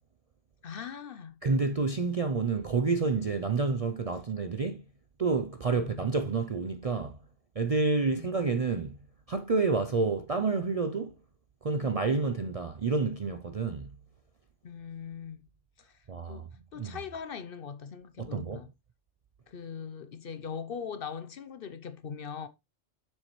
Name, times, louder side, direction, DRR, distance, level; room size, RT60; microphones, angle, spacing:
voice 1, 0.6-1.4 5.7-6.0 8.0-8.4 14.6-15.5 15.8-15.9 16.3-18.7 19.5-22.5, left 6 dB, 55° left, 0.8 m, -41 dB
voice 2, 1.4-4.8 5.2-7.2 7.6-9.0 9.3-11.1 11.6-14.0 16.1-16.5 16.8-17.0 18.2-18.6, right 4 dB, 45° right, 0.5 m, -29 dB
7.4 x 6.4 x 3.1 m
omnidirectional pair, 1.2 m